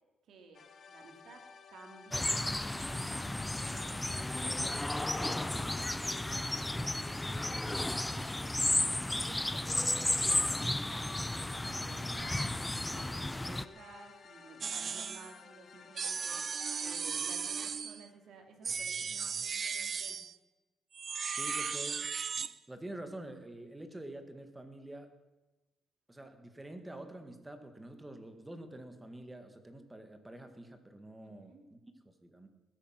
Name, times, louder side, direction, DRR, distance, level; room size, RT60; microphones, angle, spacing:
voice 1, 0.3-2.4 2.7-20.2 31.2-31.6, right 4 dB, 70° right, 3 dB, 3.1 m, -55 dB
sound 1, 0.5-18.4, left 5 dB, 50° left, 1.0 m, -56 dB
sound 2, 2.1-13.6, left 1 dB, 10° left, 0.6 m, -33 dB
sound 3, 14.6-15.3 16.0-18.1 18.6-20.4 20.9-22.5, right 6 dB, 45° right, 0.5 m, -36 dB
voice 2, 21.3-22.2 22.7-25.1 26.1-31.8 32.0-32.5, right 1 dB, 15° right, 7 dB, 1.8 m, -47 dB
19.5 x 8.9 x 6.0 m, 1.1 s
cardioid pair, 90°, 0 cm